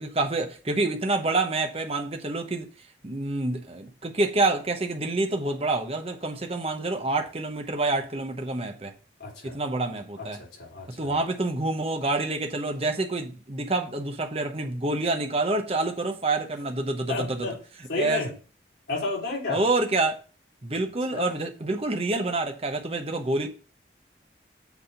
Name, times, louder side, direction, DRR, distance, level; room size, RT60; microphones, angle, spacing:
voice 1, 0.0-2.7 3.0-8.9 9.4-10.4 10.9-17.5 18.0-18.3 19.5-20.2 20.6-23.5, right 2 dB, 35° right, 0.9 m, -27 dB
voice 2, 9.2-9.6 10.2-11.2 17.1-17.6 17.9-18.3 18.9-19.6 21.1-21.4, left 3 dB, 70° left, 3.5 m, -31 dB
8.2 x 3.5 x 5.5 m
head